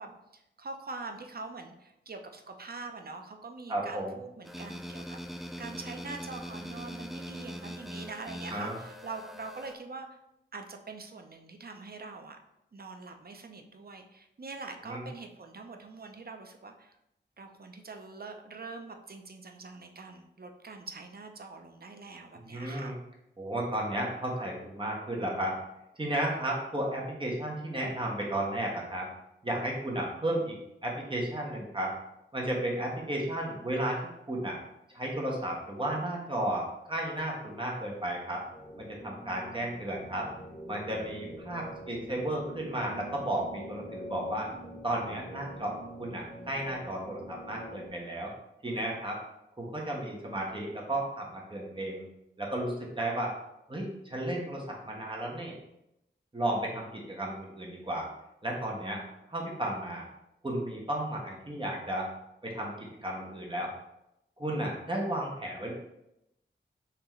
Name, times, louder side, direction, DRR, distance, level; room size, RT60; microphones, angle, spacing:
voice 1, 0.0-10.2 10.5-12.4 12.7-17.0 17.4-23.0, right 3 dB, 50° right, 4 dB, 0.6 m, -44 dB
voice 2, 3.7-4.1 8.5-8.7 14.8-15.0 22.4-22.9 23.4-25.6 25.9-29.1 29.4-30.5 30.8-31.9 32.3-34.0 34.3-34.6 34.9-38.4 38.8-40.3 40.7-44.5 44.8-48.3 48.6-49.2 49.6-52.0 52.4-53.3 53.7-55.6 56.3-58.1 58.4-59.0 59.3-60.1 60.4-62.1 62.4-63.7 64.4-65.7, right 1 dB, 25° right, -2 dB, 1.2 m, -33 dB
sound 1, 4.4-9.7, equal, ahead, 0.3 m, -42 dB
sound 2, 38.5-47.9, equal, 30° left, 0.9 m, -45 dB
5.8 x 2.9 x 3.1 m, 0.85 s
wide cardioid pair, 75°, 20 cm